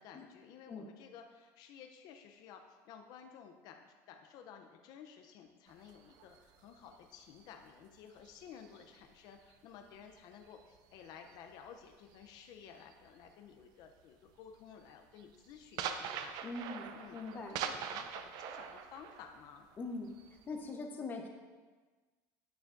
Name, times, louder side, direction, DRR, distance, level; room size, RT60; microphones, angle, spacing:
voice 1, 0.0-16.4 16.9-17.2 17.5-19.7, left 7 dB, 55° left, 5 dB, 0.6 m, -54 dB
sound 1, 5.7-9.5 9.9-13.3 13.6-13.9 14.3-20.7, right 7 dB, 55° right, 0.5 m, -44 dB
voice 2, 16.4-17.5 19.8-20.1 20.5-21.3, left 3 dB, 25° left, 3 dB, 0.8 m, -42 dB
9.1 x 7.0 x 2.6 m, 1.4 s
cardioid pair, 155°, 8 cm